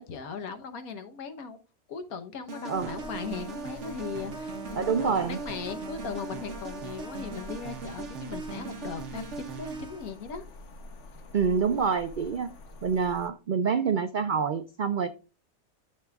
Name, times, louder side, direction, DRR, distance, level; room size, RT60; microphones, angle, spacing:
voice 1, 0.0-1.6 1.9-10.4, left 5 dB, 85° left, 1.5 m, -38 dB
sound 1, 2.5-10.1, right 4 dB, 55° right, 1.3 m, -39 dB
sound 2, 2.7-13.3, left 1 dB, 55° left, 1.3 m, -47 dB
voice 2, 2.7-3.0 4.7-5.4 11.3-12.5 12.8-15.1, right 6 dB, 80° right, 0.4 m, -27 dB
12.0 x 6.7 x 2.3 m
omnidirectional pair, 1.5 m